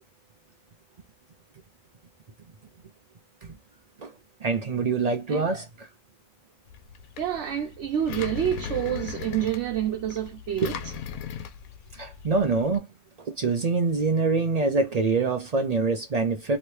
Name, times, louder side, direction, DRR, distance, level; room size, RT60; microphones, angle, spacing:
voice 1, 4.4-5.9 11.9-12.9 13.2-16.6, right 4 dB, 90° right, 0.3 m, -25 dB
voice 2, 5.3-5.6 7.2-10.8, right 10 dB, 65° right, 0.9 m, -28 dB
Engine, 6.7-12.8, left 8 dB, 85° left, 1.0 m, -38 dB
3.0 x 2.8 x 3.1 m
omnidirectional pair, 1.5 m